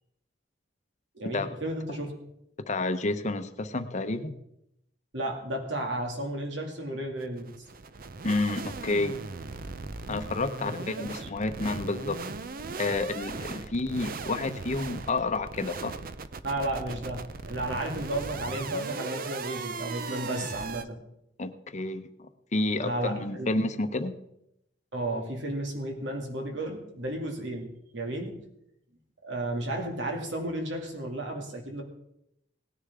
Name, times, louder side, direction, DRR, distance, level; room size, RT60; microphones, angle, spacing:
voice 1, 1.1-2.1 5.1-7.5 10.6-11.6 16.4-21.0 22.8-23.5 24.9-28.4 29.2-31.8, right 1 dB, 75° right, 2 dB, 2.4 m, -33 dB
voice 2, 2.7-4.3 8.2-9.2 10.1-12.2 12.8-15.9 21.4-24.1, left 2 dB, 40° left, 9 dB, 0.8 m, -30 dB
sound 1, 7.2-20.8, right 4 dB, 50° right, 0.6 m, -38 dB
18.5 x 10.0 x 3.6 m, 0.81 s
head